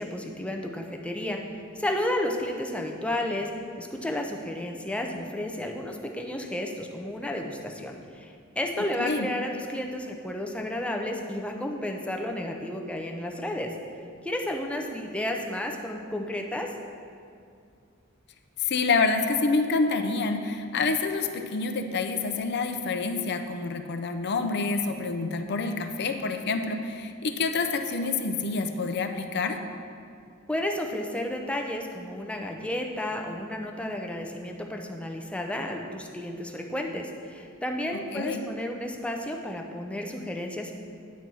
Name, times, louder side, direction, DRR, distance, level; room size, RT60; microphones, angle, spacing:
voice 1, 0.0-1.4 1.7-3.5 3.8-13.7 14.2-16.7 30.5-40.7, left 1 dB, 5° left, 2 dB, 0.6 m, -32 dB
voice 2, 18.6-29.6 38.1-38.4, left 4 dB, 55° left, 6 dB, 0.6 m, -27 dB
9.3 x 4.2 x 6.2 m, 2.3 s
head